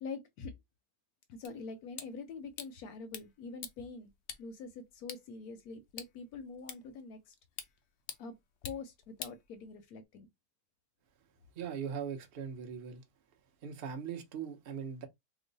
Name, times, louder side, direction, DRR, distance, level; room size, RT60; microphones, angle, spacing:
voice 1, 0.0-0.5 1.3-4.1 4.4-7.3 8.2-8.4 8.6-10.3, left 4 dB, 70° left, 0.9 m, -45 dB
sound 1, 1.4-10.0, left 8 dB, 85° left, 0.6 m, -50 dB
voice 2, 11.5-13.0 13.6-15.1, right 7 dB, 55° right, 0.6 m, -40 dB
3.0 x 2.0 x 3.9 m
omnidirectional pair, 1.8 m